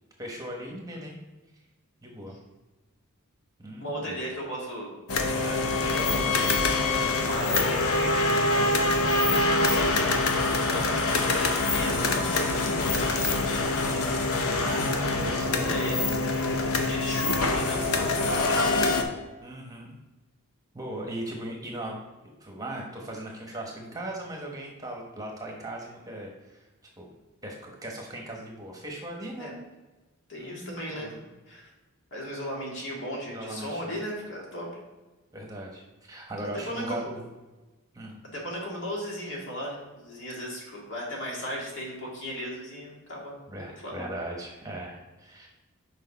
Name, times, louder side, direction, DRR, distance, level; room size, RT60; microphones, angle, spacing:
voice 1, 0.2-1.2 2.0-2.3 3.6-4.2 10.7-10.9 14.6-16.3 19.4-19.9 20.7-22.0 22.4-26.6 27.0-27.1 27.4-29.5 30.4-31.1 33.3-34.0 35.3-37.2 37.9-38.2 43.5-45.5, right 1 dB, 15° right, 0 dB, 1.1 m, -38 dB
voice 2, 3.8-4.9 5.4-10.2 10.4-14.4 15.6-16.0 16.8-19.0 29.4-29.5 30.3-31.7 32.1-34.7 36.7-37.0 38.3-43.4 43.8-44.1, equal, 60° left, -3 dB, 2.1 m, -36 dB
sound 1, 5.1-19.0, left 3 dB, 75° left, 0.8 m, -25 dB
6.5 x 5.1 x 4.0 m, 1.2 s
head